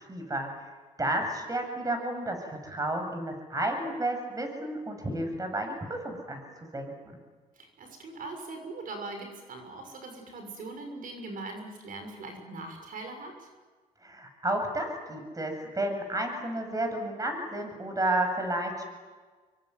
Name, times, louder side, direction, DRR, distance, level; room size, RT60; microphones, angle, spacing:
voice 1, 0.1-0.5 1.0-6.4 6.7-7.2 14.0-18.9, right 1 dB, 25° right, 5 dB, 7.8 m, -31 dB
voice 2, 7.5-13.5, right 2 dB, 65° right, 5 dB, 6.6 m, -41 dB
26.5 x 23.5 x 9.6 m, 1.5 s
cardioid pair, 85°, 15 cm